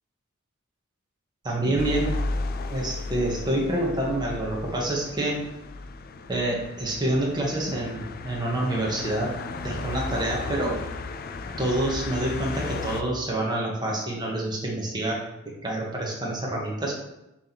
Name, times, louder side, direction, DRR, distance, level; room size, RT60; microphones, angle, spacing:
voice 1, 1.4-2.2 2.7-5.4 6.3-9.3 9.6-10.8 11.6-15.2 15.6-17.0, right 1 dB, 20° right, -2 dB, 1.6 m, -27 dB
sound 1, 1.8-13.0, left 3 dB, 45° left, 0.5 m, -34 dB
6.8 x 3.7 x 6.0 m, 0.91 s
head